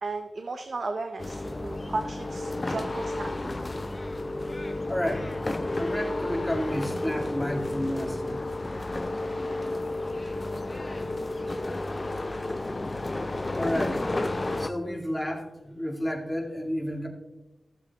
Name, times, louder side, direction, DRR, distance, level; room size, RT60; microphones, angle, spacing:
voice 1, 0.0-3.5, right 3 dB, 55° right, 7 dB, 0.7 m, -35 dB
sound 1, 1.2-14.7, left 2 dB, 25° left, 0.5 m, -31 dB
voice 2, 4.9-5.3 5.8-8.5 13.6-14.0 14.6-17.1, equal, 5° left, 1 dB, 2.0 m, -31 dB
15.0 x 7.5 x 3.5 m, 1.0 s
wide cardioid pair, 85°, 0 cm